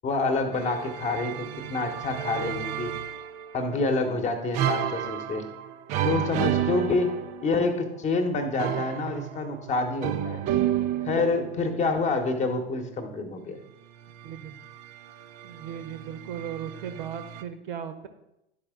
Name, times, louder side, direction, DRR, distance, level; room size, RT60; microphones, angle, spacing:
voice 1, 0.0-2.9 3.5-5.4 6.0-7.2 7.4-10.4 11.0-13.6, left 3 dB, 25° left, 6 dB, 1.1 m, -27 dB
sound 1, 0.5-3.7 4.5-7.7 8.6-12.0 14.0-17.4, right 11 dB, 25° right, 0.4 m, -31 dB
voice 2, 14.2-14.6 15.4-18.1, right 8 dB, 55° right, 9 dB, 0.9 m, -37 dB
11.5 x 4.8 x 3.7 m, 0.85 s
figure-of-eight pair, 85°, 31 cm